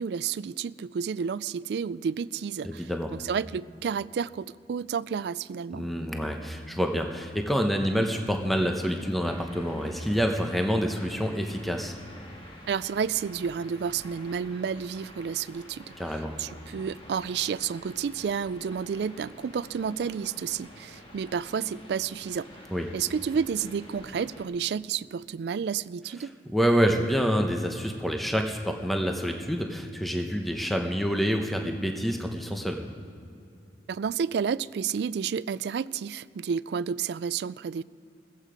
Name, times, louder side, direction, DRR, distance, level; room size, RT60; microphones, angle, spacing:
voice 1, 0.0-5.9 12.7-15.9 16.4-22.5 22.9-26.3 33.9-37.8, right 7 dB, 65° right, 19 dB, 0.3 m, -31 dB
voice 2, 2.6-3.1 5.7-11.9 16.0-16.3 22.7-22.9 26.5-32.8, equal, ahead, 3 dB, 0.9 m, -27 dB
sound 1, 9.2-24.4, left 1 dB, 30° left, 1.7 m, -48 dB
15.5 x 14.5 x 5.1 m, 2.5 s
head